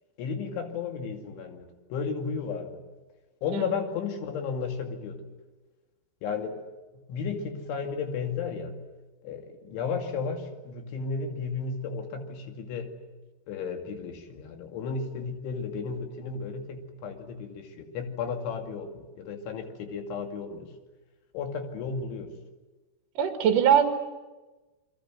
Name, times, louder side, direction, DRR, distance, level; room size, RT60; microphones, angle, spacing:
voice 1, 0.2-2.8 3.4-5.2 6.2-6.6 7.1-8.7 9.2-12.9 13.5-20.7 21.3-22.3, left 5 dB, 90° left, 5 dB, 4.8 m, -33 dB
voice 2, 23.2-23.8, right 9 dB, 55° right, 5 dB, 3.2 m, -21 dB
29.0 x 22.5 x 7.9 m, 1.2 s
omnidirectional pair, 5.3 m